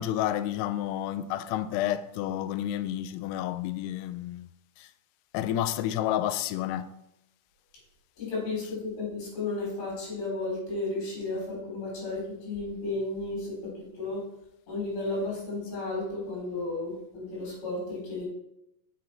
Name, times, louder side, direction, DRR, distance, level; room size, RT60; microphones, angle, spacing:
voice 1, 0.0-4.5 4.8-4.9 5.3-6.9, left 12 dB, 85° left, 2.6 m, -30 dB
voice 2, 8.2-13.6 13.9-14.2 14.7-18.3, left 2 dB, 65° left, 5.5 m, -33 dB
7.4 x 6.8 x 4.4 m
omnidirectional pair, 4.8 m